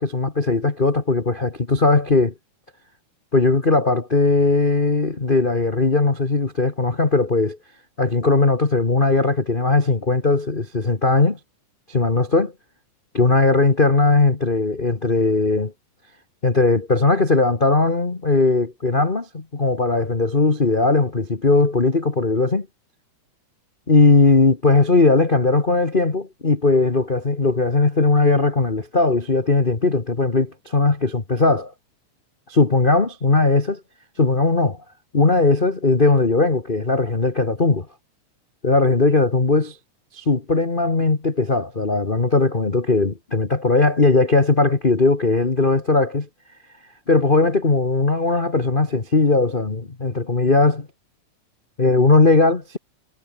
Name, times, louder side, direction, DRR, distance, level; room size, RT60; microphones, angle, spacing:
voice 1, 0.0-2.3 3.3-7.6 8.0-11.4 11.9-12.5 13.1-15.7 16.4-22.7 23.9-31.7 32.5-33.8 34.2-34.8 35.1-37.9 38.6-39.8 40.1-46.3 47.1-50.9 51.8-52.8, left 3 dB, 25° left, 1.2 m, -18 dB
omnidirectional pair, 3.6 m